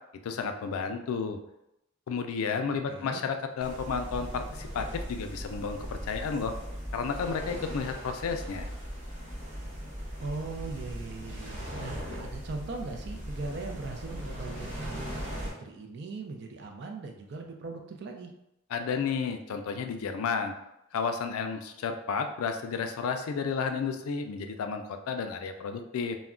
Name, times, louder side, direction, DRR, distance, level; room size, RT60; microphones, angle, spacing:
voice 1, 0.2-1.4 2.1-6.5 6.9-8.7 18.7-20.5 20.9-26.2, left 5 dB, 90° left, 6 dB, 0.3 m, -32 dB
voice 2, 2.7-3.2 10.2-18.3, right 3 dB, 50° right, 3 dB, 0.4 m, -40 dB
sound 1, 3.6-15.5, equal, 30° right, 0.8 m, -39 dB
2.3 x 2.1 x 3.6 m, 0.86 s
head